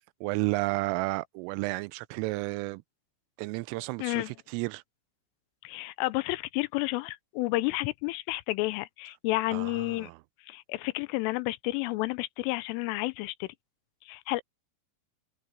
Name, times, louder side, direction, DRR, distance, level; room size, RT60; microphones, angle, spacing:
voice 1, 0.2-2.8 3.4-4.8 9.5-10.2, right 22 dB, 90° right, 3.2 m, -32 dB
voice 2, 4.0-4.3 5.6-10.1 10.5-13.5 14.1-14.4, left 20 dB, 85° left, 3.3 m, -31 dB
omnidirectional pair, 5.7 m